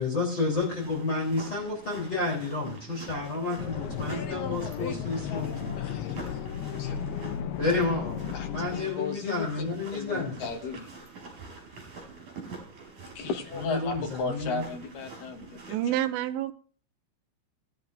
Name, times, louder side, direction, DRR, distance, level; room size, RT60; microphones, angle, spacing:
voice 1, 0.0-5.5 7.6-10.4 13.6-14.6, left 3 dB, 25° left, -2 dB, 3.4 m, -30 dB
sound 1, 0.6-16.0, right 4 dB, 40° right, 5.7 m, -46 dB
sound 2, 3.6-8.8, left 9 dB, 80° left, 2.4 m, -35 dB
voice 2, 4.1-6.2 6.8-7.0 8.3-9.6 9.9-11.0 13.2-15.6, left 4 dB, 60° left, 4 dB, 2.5 m, -36 dB
voice 3, 15.7-16.5, right 12 dB, 80° right, 9 dB, 2.8 m, -28 dB
19.5 x 12.0 x 2.6 m, 0.42 s
omnidirectional pair, 5.5 m